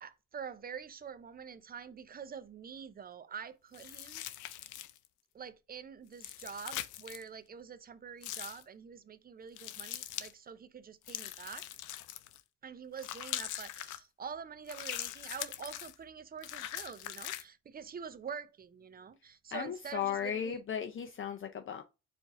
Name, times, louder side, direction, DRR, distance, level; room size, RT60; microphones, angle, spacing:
voice 1, 0.0-4.2 5.3-11.7 12.6-20.6, right 6 dB, 30° right, 0.5 m, -46 dB
sound 1, 3.7-5.1 6.1-7.2 8.2-8.6 9.6-10.3 11.1-12.4 13.0-14.0 14.7-15.9 16.4-17.4, left 13 dB, 90° left, 0.5 m, -42 dB
voice 2, 19.5-21.8, left 8 dB, 45° left, 0.6 m, -36 dB
4.6 x 2.6 x 4.1 m
cardioid pair, 90°, 30 cm